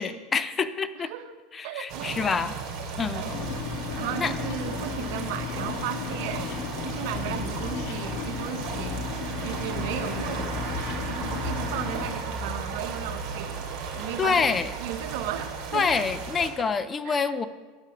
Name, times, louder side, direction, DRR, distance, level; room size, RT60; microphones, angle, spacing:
voice 1, 0.0-1.1 1.5-2.5 3.0-3.3 4.2-4.3 14.2-14.7 15.7-17.5, left 5 dB, 20° left, 13 dB, 0.5 m, -26 dB
voice 2, 0.9-1.4 1.6-2.3 3.0-3.6 4.0-9.0 9.4-10.6 11.1-16.1 17.0-17.4, right 10 dB, 70° right, 8 dB, 0.9 m, -36 dB
sound 1, 1.9-16.5, right 5 dB, 50° right, 2.3 m, -35 dB
sound 2, 3.3-12.1, left 6 dB, 60° left, 1.3 m, -34 dB
8.8 x 7.4 x 6.0 m, 1.4 s
supercardioid pair, 130°, 0 cm